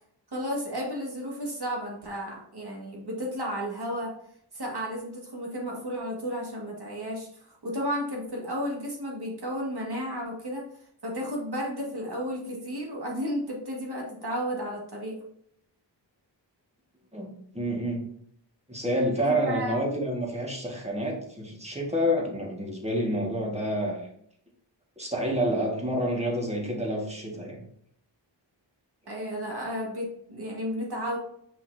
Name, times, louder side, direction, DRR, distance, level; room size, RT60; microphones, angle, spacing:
voice 1, 0.3-4.1 4.5-10.7 11.0-15.2 19.2-19.8 29.1-31.2, equal, 55° right, -2 dB, 2.1 m, -33 dB
voice 2, 17.1-18.0 18.7-24.1 25.0-27.6, equal, 15° right, -2 dB, 1.8 m, -28 dB
5.9 x 5.7 x 2.8 m, 0.69 s
wide cardioid pair, 80°, 46 cm